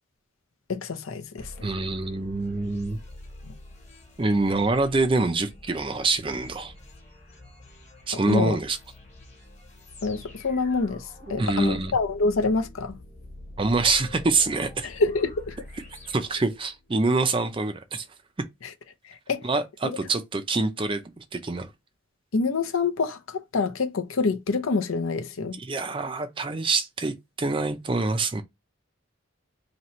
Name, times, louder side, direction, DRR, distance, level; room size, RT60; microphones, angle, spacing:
voice 1, 0.7-1.7 3.4-3.6 8.3-8.6 10.0-13.0 14.8-15.5 18.6-18.7 19.0-19.5 19.8-20.0 22.3-25.6, left 4 dB, 70° left, 0.6 m, -26 dB
sound 1, 1.4-17.0, left 1 dB, 35° left, 1.2 m, -46 dB
voice 2, 1.6-3.0 4.2-6.7 8.1-8.8 11.3-11.9 13.6-14.9 16.1-18.0 19.4-21.7 25.6-28.4, right 3 dB, 25° right, 0.4 m, -25 dB
3.0 x 2.9 x 4.1 m
head